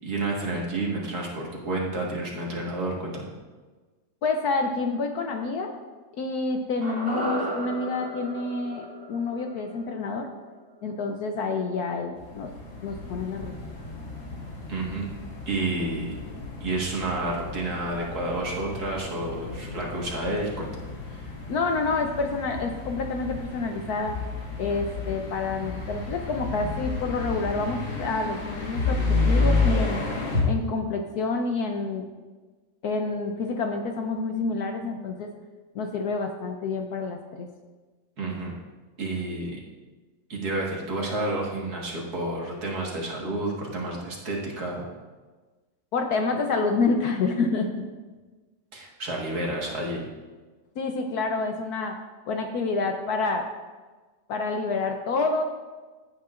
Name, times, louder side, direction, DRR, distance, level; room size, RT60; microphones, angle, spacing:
voice 1, 0.0-3.3 14.7-15.1 15.5-16.1 16.6-20.7 21.1-21.2 38.2-38.5 39.0-39.6 40.3-44.8 48.7-50.1, right 2 dB, 55° right, -2 dB, 2.1 m, -30 dB
voice 2, 4.2-5.7 6.1-10.3 10.8-12.5 12.8-13.5 21.5-24.2 24.6-30.0 30.5-32.1 32.8-35.3 35.7-37.5 45.9-47.7 50.8-52.0 52.3-53.5 54.3-55.4, left 3 dB, 65° left, 4 dB, 1.1 m, -28 dB
sound 1, 6.8-11.1 11.4-11.5, right 1 dB, 30° right, 2.2 m, -35 dB
sound 2, 12.2-30.4, left 3 dB, 90° left, 2.4 m, -31 dB
15.5 x 8.6 x 2.5 m, 1.3 s
omnidirectional pair, 2.0 m